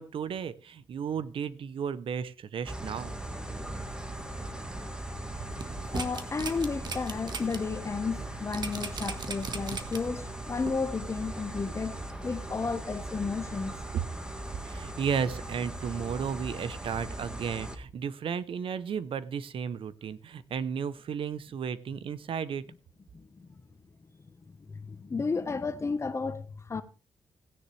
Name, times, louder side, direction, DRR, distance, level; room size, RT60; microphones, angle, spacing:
voice 1, 0.0-3.1 14.6-22.6, right 7 dB, 65° right, 0.7 m, -34 dB
sound 1, 2.6-17.8, right 1 dB, 10° right, 1.5 m, -39 dB
sound 2, 5.5-7.6 8.0-8.1 8.5-10.2 10.6-10.7, right 4 dB, 50° right, 1.4 m, -37 dB
voice 2, 5.9-13.8 23.1-23.6 24.5-26.8, left 4 dB, 30° left, 1.1 m, -33 dB
16.5 x 9.9 x 3.2 m
wide cardioid pair, 130°, 10 cm